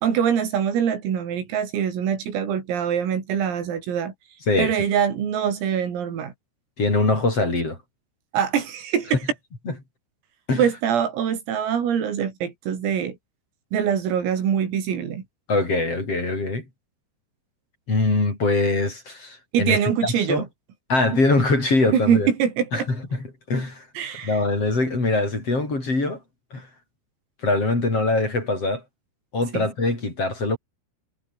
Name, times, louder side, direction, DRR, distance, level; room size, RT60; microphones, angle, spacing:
voice 1, 0.0-4.1 4.6-6.3 8.3-9.2 10.6-13.2 13.7-15.2 19.5-20.5 21.9-22.9 24.0-24.4 29.5-29.7, right 8 dB, 80° right, 6.8 m, -24 dB
voice 2, 4.5-4.8 6.8-7.8 9.7-9.8 10.5-10.6 15.5-16.7 17.9-20.4 20.9-22.3 22.7-23.9 24.2-26.2 26.5-26.7 27.4-28.8 29.3-30.6, left 2 dB, 30° left, 7.5 m, -23 dB
omnidirectional pair, 5.9 m